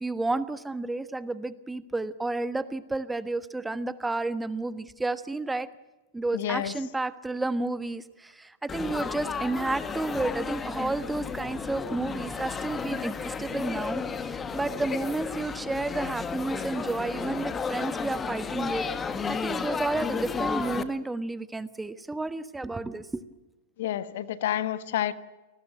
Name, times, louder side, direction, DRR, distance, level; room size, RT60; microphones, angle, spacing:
voice 1, 0.0-5.7 6.1-18.8 19.3-23.2, right 2 dB, 10° right, 13 dB, 1.3 m, -31 dB
voice 2, 6.3-6.7 23.8-25.1, left 12 dB, 60° left, 14 dB, 1.3 m, -29 dB
Laughter / Chatter / Crowd, 8.7-20.8, left 5 dB, 20° left, 1.7 m, -33 dB
29.5 x 19.5 x 7.7 m, 1.1 s
figure-of-eight pair, 100°, 0 cm